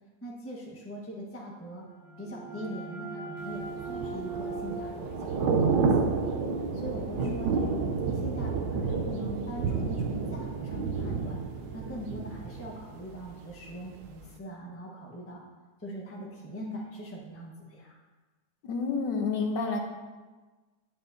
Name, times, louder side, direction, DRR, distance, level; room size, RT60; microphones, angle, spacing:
voice 1, 0.2-1.9 2.2-6.2 6.7-7.9 8.1-11.4 11.7-15.4 15.8-18.0, right 1 dB, 10° left, -3 dB, 0.9 m, -41 dB
sound 1, 1.7-7.2, right 4 dB, 50° right, 1.8 m, -41 dB
Thunder / Rain, 3.6-13.5 13.8-14.1, right 4 dB, 80° right, 1.3 m, -30 dB
voice 2, 18.6-19.8, left 4 dB, 75° left, 3 dB, 1.6 m, -29 dB
9.2 x 8.7 x 2.6 m, 1.3 s
omnidirectional pair, 2.0 m